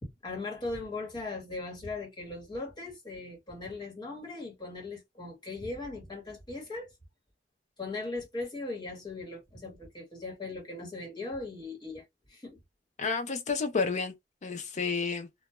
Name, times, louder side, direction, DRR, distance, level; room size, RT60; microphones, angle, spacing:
voice 1, 0.0-6.9 7.8-12.6, left 2 dB, 25° left, 1.0 m, -39 dB
voice 2, 13.0-14.1 14.4-15.3, left 4 dB, 40° left, 0.4 m, -30 dB
2.2 x 2.0 x 2.8 m
head